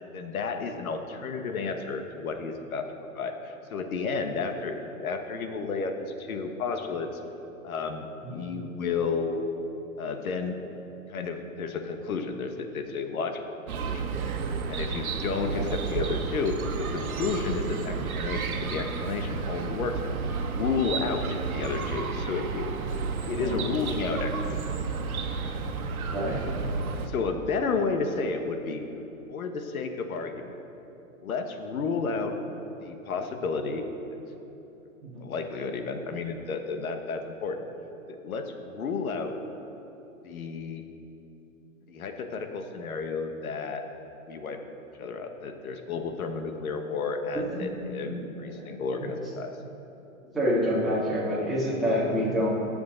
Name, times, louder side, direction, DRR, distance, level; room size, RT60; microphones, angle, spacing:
voice 1, 0.1-2.9 3.1-7.1 7.6-9.4 10.0-10.6 11.1-13.4 13.8-14.1 14.7-19.9 20.4-21.2 21.5-22.7 23.3-24.4 27.1-28.9 29.3-30.6 31.2-32.3 32.8-33.8 35.2-37.7 38.1-39.3 40.2-40.8 41.9-43.8 44.3-44.6 45.0-49.5, left 4 dB, 75° left, 5 dB, 1.4 m, -32 dB
Chirp tweet, 13.7-27.1, right 4 dB, 75° right, 1.3 m, -31 dB
voice 2, 26.1-26.4 35.0-35.3 47.3-47.6 48.0-48.2 48.4-48.7 49.0-49.1 50.3-52.5, equal, ahead, -10 dB, 2.2 m, -28 dB
20.0 x 7.0 x 3.9 m, 3.0 s
hypercardioid pair, 155°, 43 cm